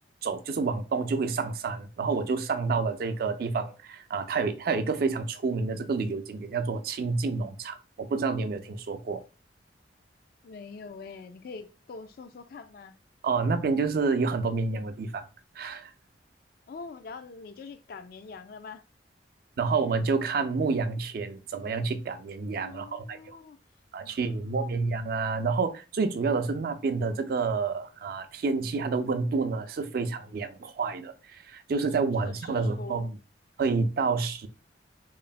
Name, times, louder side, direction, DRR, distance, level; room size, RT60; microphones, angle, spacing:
voice 1, 0.2-9.2 13.2-15.3 15.6-15.9 19.6-23.4 23.9-33.1 33.6-34.5, right 4 dB, 55° right, 0.3 m, -29 dB
voice 2, 10.4-13.0 16.7-18.8 22.6-23.6 24.0-24.8 32.2-33.0, left 4 dB, 55° left, 0.3 m, -44 dB
3.0 x 2.0 x 2.4 m
head